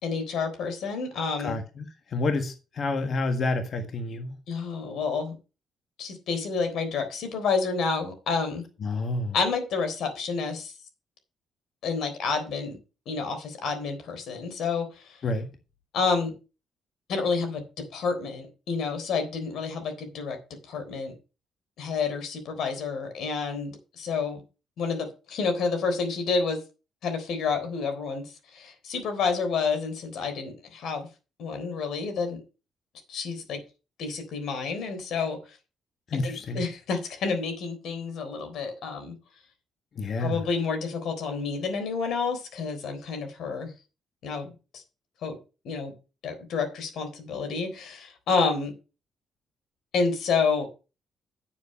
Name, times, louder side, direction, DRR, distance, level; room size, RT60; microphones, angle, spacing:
voice 1, 0.0-1.6 4.5-5.3 6.0-8.6 9.3-10.7 11.8-12.8 13.1-15.2 15.9-16.4 17.1-17.6 17.9-20.4 20.7-21.2 21.8-24.4 24.8-26.6 27.0-31.1 31.4-32.4 33.1-33.6 34.0-35.6 36.2-39.2 40.2-43.7 44.2-44.8 45.2-45.4 45.6-45.9 46.2-48.7 49.9-50.7, left 5 dB, 75° left, 3.6 m, -29 dB
voice 2, 1.4-4.3 8.8-9.3 15.2-15.5 36.1-36.6 39.9-40.4, left 2 dB, 55° left, 1.6 m, -29 dB
9.3 x 7.5 x 5.4 m
cardioid pair, 90°, 0 cm